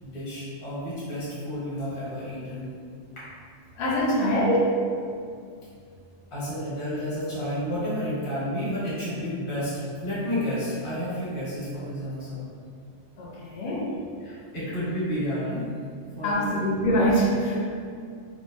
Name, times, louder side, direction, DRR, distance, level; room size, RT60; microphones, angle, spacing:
voice 1, 0.0-2.7 3.2-3.3 6.3-9.7 10.0-12.4 14.2-15.6 16.2-16.5, equal, 30° left, -11 dB, 0.9 m, -31 dB
voice 2, 3.8-4.9 13.2-13.9 16.2-17.6, equal, 70° left, -4 dB, 0.8 m, -24 dB
3.4 x 2.0 x 2.2 m, 2.3 s
omnidirectional pair, 1.2 m